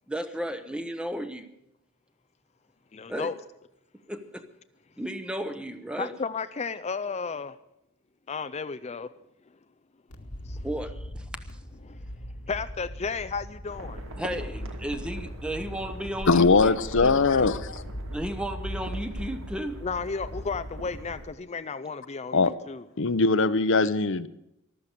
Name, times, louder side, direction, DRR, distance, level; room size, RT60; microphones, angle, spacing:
voice 1, 0.1-1.5 3.1-3.3 4.1-4.4 5.0-6.1 10.6-11.3 14.2-16.7 17.0-17.2 18.1-19.8, right 1 dB, 5° right, 0.8 m, -34 dB
voice 2, 2.9-3.3 6.0-7.6 8.3-9.1 10.4-10.7 11.8-12.1 12.5-14.0 17.3-17.5 19.8-22.9, left 5 dB, 30° left, 0.4 m, -33 dB
sound 1, 10.1-21.2, equal, 90° left, 2.0 m, -39 dB
sound 2, 13.7-21.3, right 1 dB, 65° right, 2.2 m, -43 dB
voice 3, 16.3-17.8 22.3-22.5 23.0-24.3, left 4 dB, 60° left, 0.7 m, -21 dB
14.5 x 12.5 x 6.6 m
head